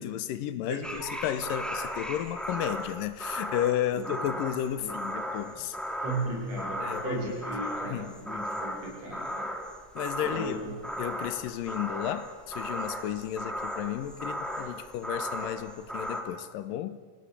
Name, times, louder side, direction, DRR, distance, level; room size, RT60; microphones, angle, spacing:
voice 1, 0.0-5.8 6.8-7.4 7.8-8.1 10.0-10.6 11.0-17.0, left 11 dB, 90° left, 13 dB, 2.7 m, -33 dB
sound 1, 0.8-16.2, equal, ahead, 2.4 m, -36 dB
voice 2, 3.9-4.2 4.8-5.7 6.0-9.5 10.2-10.7, right 2 dB, 50° right, -2 dB, 8.5 m, -36 dB
28.5 x 17.5 x 8.4 m, 1.4 s
omnidirectional pair, 3.9 m